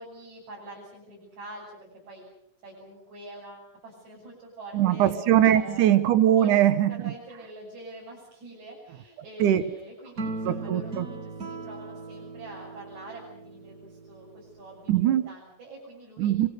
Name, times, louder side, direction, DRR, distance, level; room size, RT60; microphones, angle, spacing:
voice 1, 0.0-2.2 2.6-5.1 5.4-5.9 6.3-10.9 11.2-15.0 15.3-16.3, right 2 dB, 65° right, -4 dB, 8.4 m, -45 dB
voice 2, 4.7-7.0 9.4-9.6 10.5-11.1 14.9-15.3 16.2-16.5, right 11 dB, 85° right, 12 dB, 2.7 m, -21 dB
sound 1, 10.2-14.6, right 3 dB, 30° right, 2.0 m, -38 dB
29.5 x 23.0 x 6.6 m, 0.73 s
omnidirectional pair, 3.5 m